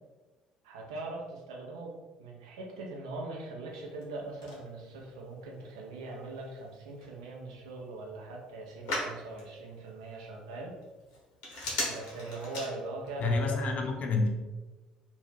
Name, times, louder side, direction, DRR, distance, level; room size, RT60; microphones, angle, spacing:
voice 1, 0.6-10.7 11.9-13.6, right 2 dB, 80° right, -1 dB, 0.6 m, -41 dB
Telephone, 3.7-13.3, left 1 dB, 75° left, 0.8 m, -42 dB
voice 2, 13.2-14.3, left 3 dB, 50° left, 3 dB, 0.5 m, -28 dB
2.7 x 2.2 x 3.2 m, 1.2 s
hypercardioid pair, 55°, 3 cm